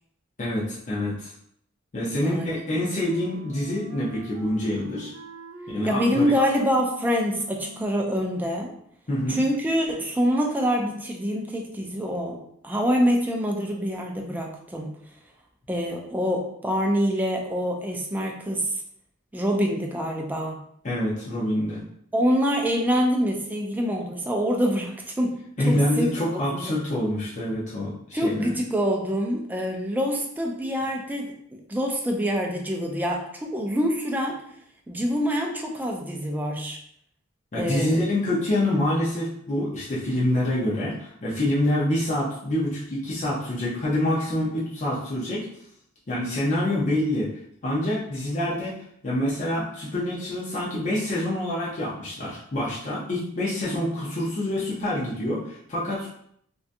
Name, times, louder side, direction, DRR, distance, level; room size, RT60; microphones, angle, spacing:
voice 1, 0.4-1.3 1.9-5.1 5.7-6.3 9.1-9.4 20.8-21.8 25.6-28.5 37.5-45.5 46.1-47.3 47.6-56.1, left 1 dB, 35° left, -7 dB, 0.6 m, -26 dB
voice 2, 2.2-2.7 5.9-8.7 9.3-12.4 12.6-14.9 15.7-18.7 19.3-20.6 22.1-25.4 25.7-26.7 28.1-34.4 34.9-36.8 37.6-38.1, equal, 10° right, 0 dB, 0.3 m, -25 dB
Wind instrument woodwind instrument, 2.6-8.8, equal, 80° right, 0.5 m, -44 dB
2.6 x 2.3 x 2.5 m, 0.69 s
head